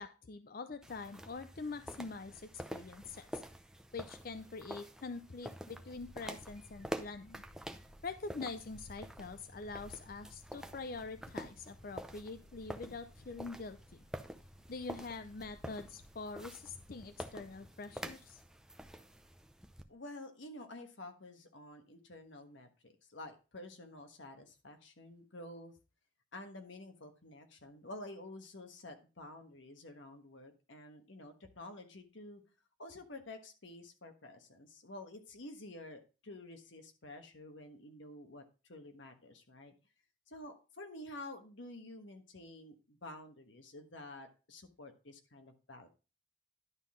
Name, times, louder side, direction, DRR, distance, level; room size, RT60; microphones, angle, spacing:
voice 1, 0.0-3.4 3.9-7.4 8.0-14.0 14.7-18.4, left 4 dB, 45° left, 11 dB, 0.5 m, -45 dB
sound 1, 0.8-19.8, equal, 5° right, 0.6 m, -48 dB
sound 2, 5.9-17.6, equal, 85° left, 5.7 m, -60 dB
voice 2, 19.9-25.7 26.3-32.4 32.8-39.7 40.3-45.9, left 1 dB, 65° left, 6 dB, 1.3 m, -50 dB
11.0 x 3.8 x 6.1 m, 0.31 s
head